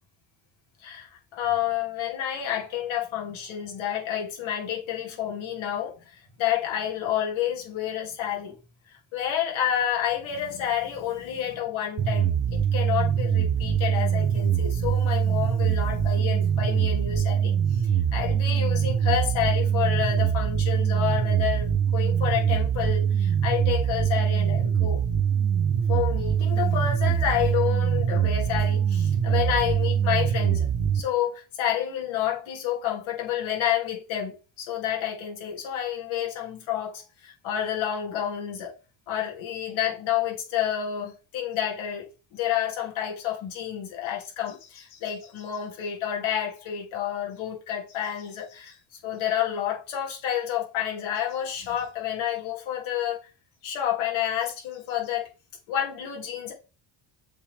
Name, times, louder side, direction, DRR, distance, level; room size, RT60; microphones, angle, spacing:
voice 1, 0.8-8.6 8.9-25.0 25.9-30.7 30.9-38.7 39.1-53.2 53.6-55.3 55.7-56.5, left 10 dB, 75° left, 2.8 m, -29 dB
sound 1, 12.0-31.0, right 8 dB, 30° right, 0.8 m, -23 dB
7.2 x 3.9 x 3.5 m
cardioid pair, 125°, 47 cm